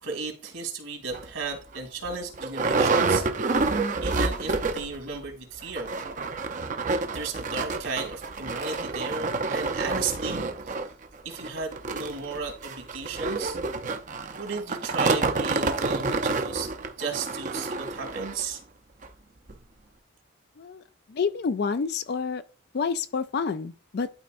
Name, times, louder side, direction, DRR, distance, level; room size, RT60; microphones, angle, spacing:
voice 1, 0.0-3.3 3.7-5.9 7.1-10.7 11.2-13.6 14.4-16.7 17.0-18.6, right 4 dB, 75° right, 2.6 m, -34 dB
sound 1, 1.1-1.3 1.7-1.8 2.0-5.0 5.3-5.4 5.6-18.4 19.0-19.1 19.5-19.6, right 3 dB, 40° right, 0.6 m, -28 dB
voice 2, 21.1-22.4 22.7-24.1, left 5 dB, 50° left, 0.4 m, -28 dB
11.5 x 4.2 x 2.6 m
head